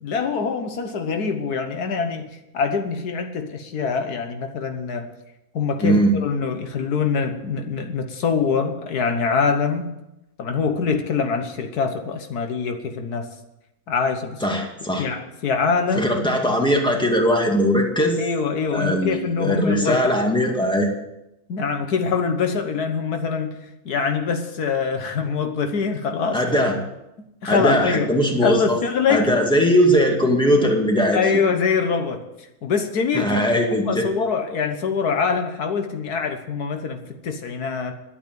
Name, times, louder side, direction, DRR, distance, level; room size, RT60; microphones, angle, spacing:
voice 1, 0.0-5.1 5.5-9.9 10.4-13.3 13.9-14.4 15.0-16.1 18.2-20.1 21.5-23.6 23.8-26.4 27.4-28.1 28.4-29.3 31.1-32.2 32.6-33.4 33.8-37.9, left 5 dB, 80° left, 7 dB, 1.7 m, -24 dB
voice 2, 5.8-6.1 14.4-15.1 16.0-18.2 18.7-20.9 26.3-26.8 27.5-28.8 29.1-31.4 33.1-34.1, equal, 5° left, 1 dB, 2.1 m, -20 dB
11.5 x 8.7 x 9.3 m, 0.91 s
omnidirectional pair, 1.6 m